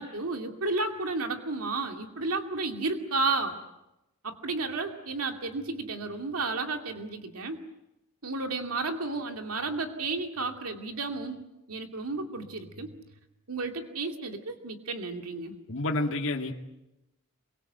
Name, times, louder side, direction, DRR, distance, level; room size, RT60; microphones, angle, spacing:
voice 1, 0.0-3.6 4.2-7.6 8.2-11.4 11.7-12.9 13.5-15.5, right 3 dB, 75° right, 4 dB, 2.5 m, -32 dB
voice 2, 15.7-16.5, left 2 dB, 65° left, 2 dB, 2.3 m, -29 dB
27.5 x 23.5 x 8.0 m, 0.92 s
head